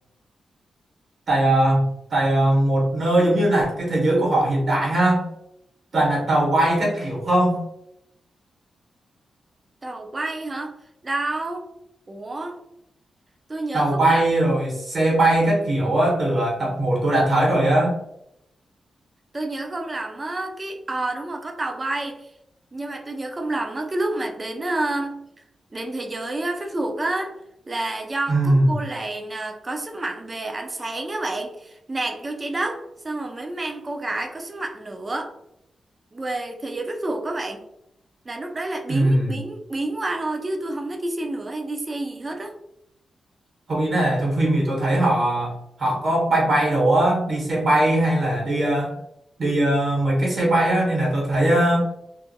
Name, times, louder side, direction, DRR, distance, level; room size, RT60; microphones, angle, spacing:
voice 1, 1.3-5.2 5.9-7.6 13.7-18.0 28.3-28.7 38.9-39.4 43.7-45.5 45.8-49.0 49.4-51.9, right 1 dB, 65° right, -3 dB, 1.2 m, -20 dB
voice 2, 9.8-10.8 11.0-11.7 12.1-12.6 13.5-14.2 19.3-22.3 22.7-25.2 25.7-27.4 27.7-35.4 36.1-37.6 38.2-42.5, right 2 dB, 35° right, 2 dB, 0.5 m, -29 dB
2.5 x 2.1 x 2.7 m, 0.79 s
supercardioid pair, 45°, 0 cm